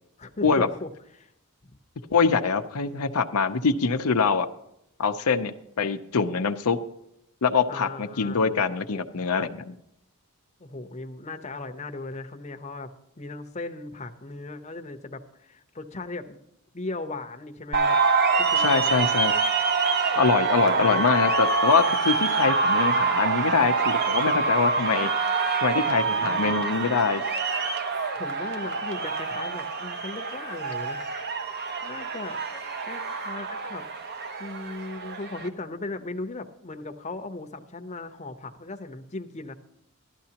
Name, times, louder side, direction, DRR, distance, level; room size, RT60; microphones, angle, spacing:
voice 1, 0.2-0.9 1.1-1.3 1.6-1.8 7.7-8.5 10.6-12.9 13.2-16.4 16.7-18.0 18.4-19.1 20.6-21.0 26.1-27.1 28.2-31.0 31.8-32.4 32.9-33.9 34.4-39.5, left 2 dB, 30° left, 6 dB, 0.8 m, -37 dB
voice 2, 2.1-4.5 5.0-6.8 7.4-9.8 18.6-19.3 20.2-25.1 25.6-27.2, left 5 dB, 85° left, 7 dB, 0.7 m, -24 dB
sound 1, 17.7-35.5, right 4 dB, 50° right, 1.0 m, -26 dB
15.5 x 12.0 x 2.9 m, 0.80 s
head